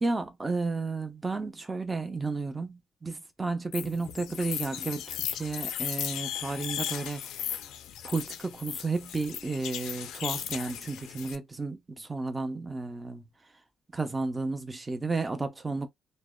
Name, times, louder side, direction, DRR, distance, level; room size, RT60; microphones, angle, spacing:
voice 1, 0.0-7.5 8.0-13.2 13.9-15.9, right 3 dB, 20° right, 0.6 m, -32 dB
sound 1, 3.7-11.4, left 10 dB, 85° left, 0.4 m, -36 dB
2.7 x 2.1 x 2.2 m
cardioid pair, 90°, 0 cm